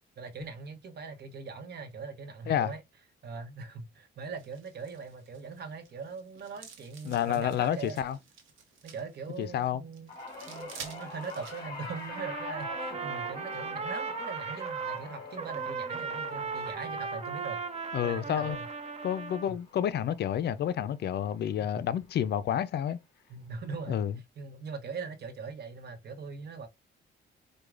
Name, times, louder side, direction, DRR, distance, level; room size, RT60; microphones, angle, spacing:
voice 1, 0.2-2.8 3.2-8.0 8.8-10.1 10.5-17.6 18.0-18.7 19.5-19.6 23.3-24.0 24.4-26.7, right 5 dB, 55° right, 0.8 m, -41 dB
sound 1, 4.4-12.2, right 5 dB, 80° right, 0.9 m, -51 dB
voice 2, 7.0-8.2 9.4-9.8 17.9-18.6 19.0-23.0 23.9-24.1, left 10 dB, 55° left, 0.4 m, -29 dB
sound 2, 10.1-20.5 20.9-21.3 22.4-22.5, left 2 dB, 20° left, 2.0 m, -45 dB
Trumpet, 12.1-15.0 15.4-19.5, right 5 dB, 30° right, 0.5 m, -37 dB
4.6 x 2.2 x 2.4 m
cardioid pair, 90°, 20 cm